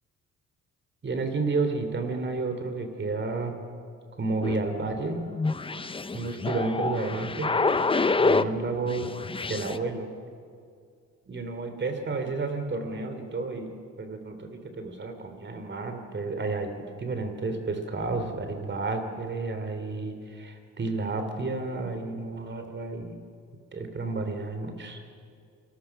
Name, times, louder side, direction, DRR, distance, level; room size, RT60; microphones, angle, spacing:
voice 1, 1.0-3.5 4.2-5.2 6.1-7.5 8.2-9.1 9.5-10.1 11.3-23.2 23.7-25.0, right 3 dB, 40° right, 6 dB, 3.2 m, -31 dB
sound 1, 4.4-8.6 8.9-9.8, left 3 dB, 20° left, 0.7 m, -27 dB
28.5 x 20.0 x 6.0 m, 2.3 s
cardioid pair, 90°, 30 cm